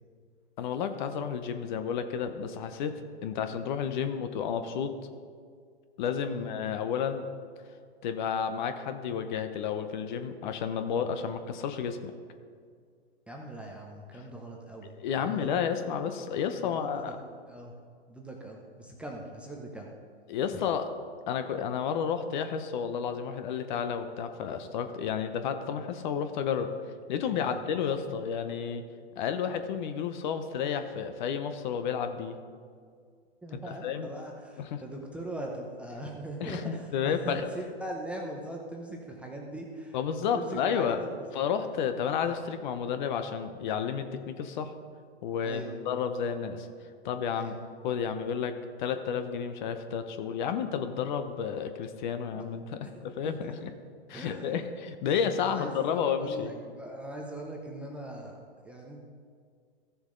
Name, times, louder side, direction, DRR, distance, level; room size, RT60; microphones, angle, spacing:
voice 1, 0.6-2.9 3.2-4.9 6.0-7.2 8.0-12.1 15.0-17.2 20.3-20.9 21.3-26.7 27.1-28.8 29.2-32.3 33.5-34.1 34.6-34.8 36.4-37.5 39.9-41.0 41.3-44.7 45.2-46.7 47.0-47.6 47.8-53.7 54.1-56.5, left 7 dB, 45° left, 9 dB, 0.8 m, -31 dB
voice 2, 13.3-14.9 15.2-15.5 16.6-16.9 17.5-17.7 18.1-19.9 27.4-27.6 33.4-40.0 40.3-41.2 45.4-45.7 47.3-47.5 52.3-52.5 52.8-53.6 54.1-54.6 55.4-58.4 58.6-59.0, right 1 dB, 5° right, -1 dB, 0.6 m, -41 dB
14.5 x 7.0 x 3.8 m, 2.1 s
hypercardioid pair, 140°, 33 cm